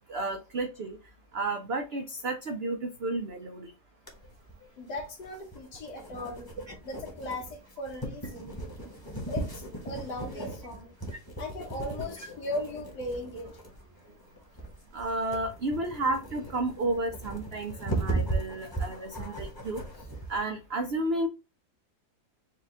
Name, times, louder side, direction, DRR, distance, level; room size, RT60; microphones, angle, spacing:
voice 1, 0.1-1.0 1.3-3.7 14.9-19.8 20.3-21.3, right 2 dB, 85° right, 0.5 m, -32 dB
sound 1, 4.1-20.4, right 2 dB, 15° left, 0.9 m, -37 dB
voice 2, 4.8-6.5 6.8-8.6 9.3-11.0 11.4-13.5, left 1 dB, 85° left, 1.9 m, -38 dB
4.8 x 2.3 x 3.6 m
omnidirectional pair, 1.8 m